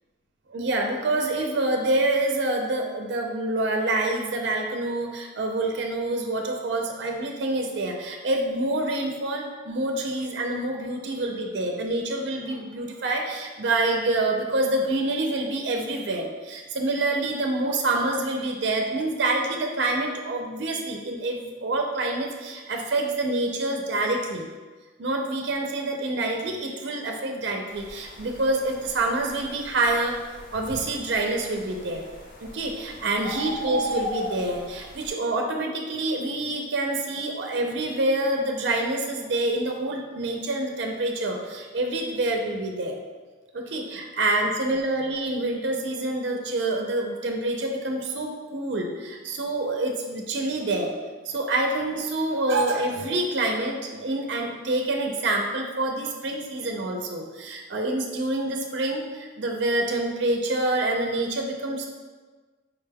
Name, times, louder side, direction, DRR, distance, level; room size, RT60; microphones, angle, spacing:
voice 1, 0.5-24.5 25.0-30.2 30.5-32.0 32.4-43.0 43.5-50.9 51.3-61.9, right 2 dB, 65° right, 2 dB, 0.4 m, -27 dB
sound 1, 27.7-35.1, equal, 45° left, 0.7 m, -37 dB
4.8 x 2.2 x 3.3 m, 1.4 s
head